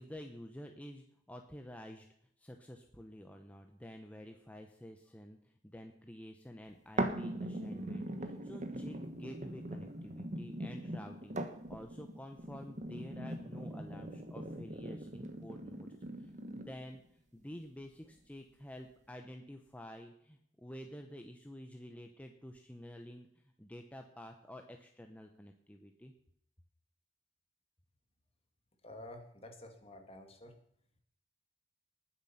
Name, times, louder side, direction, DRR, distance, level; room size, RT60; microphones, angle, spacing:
voice 1, 0.0-2.1 2.4-15.9 16.2-26.1, equal, 10° left, 4 dB, 0.9 m, -50 dB
sound 1, 7.0-17.0 17.5-17.6, right 1 dB, 40° right, 1.3 m, -41 dB
voice 2, 28.8-30.5, left 1 dB, 35° left, 5 dB, 2.1 m, -50 dB
19.5 x 7.5 x 5.8 m, 0.70 s
head